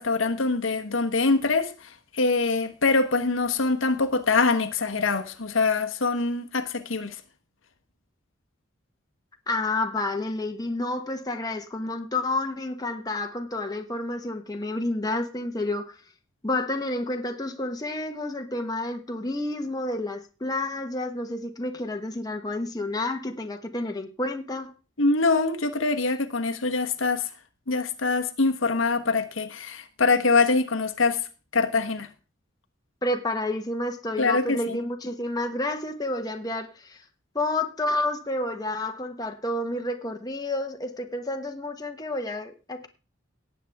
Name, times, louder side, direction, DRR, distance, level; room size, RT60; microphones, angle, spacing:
voice 1, 0.0-7.2 25.0-27.3 27.7-31.2 31.5-32.1 34.2-34.8, left 3 dB, 80° left, 1.2 m, -24 dB
voice 2, 9.5-16.0 16.4-24.7 33.0-37.0 37.3-42.9, left 2 dB, 20° left, 1.2 m, -30 dB
18.0 x 8.4 x 3.5 m
head